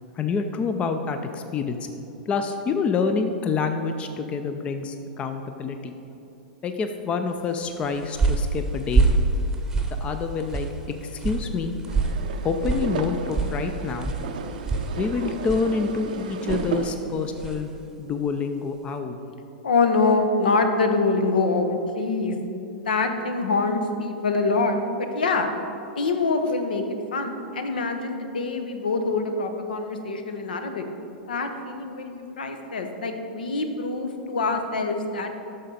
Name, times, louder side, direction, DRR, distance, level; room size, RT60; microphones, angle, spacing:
voice 1, 0.2-1.8 2.3-5.9 6.6-9.1 10.0-10.7 11.0-11.8 12.4-14.1 15.0-17.7 18.0-19.2, left 5 dB, 25° left, 7 dB, 0.5 m, -27 dB
sound 1, 7.6-17.7, right 3 dB, 10° right, 0.9 m, -27 dB
sound 2, 11.9-17.0, right 6 dB, 65° right, 0.5 m, -33 dB
voice 2, 19.6-22.4 22.7-25.5 26.0-30.8 31.3-35.3, left 3 dB, 70° left, 6 dB, 0.8 m, -25 dB
8.7 x 6.5 x 4.2 m, 2.8 s
figure-of-eight pair, 100°, 5 cm